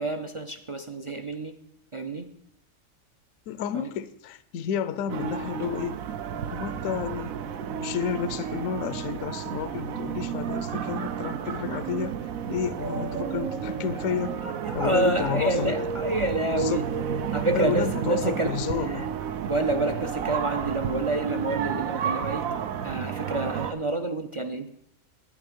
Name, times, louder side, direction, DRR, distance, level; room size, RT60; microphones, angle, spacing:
voice 1, 0.0-1.5 1.9-2.3 3.7-3.9 13.9-14.0 14.4-16.9 17.3-19.1 19.4-22.4 22.8-24.7, right 2 dB, 50° right, 7 dB, 0.3 m, -28 dB
voice 2, 3.5-6.0 6.5-7.3 7.8-14.4 14.7-15.9 16.5-16.9 17.5-19.1, left 8 dB, 75° left, 13 dB, 1.0 m, -31 dB
sound 1, 5.1-23.7, right 7 dB, 80° right, 1.1 m, -32 dB
10.5 x 9.4 x 5.2 m, 0.73 s
omnidirectional pair, 1.4 m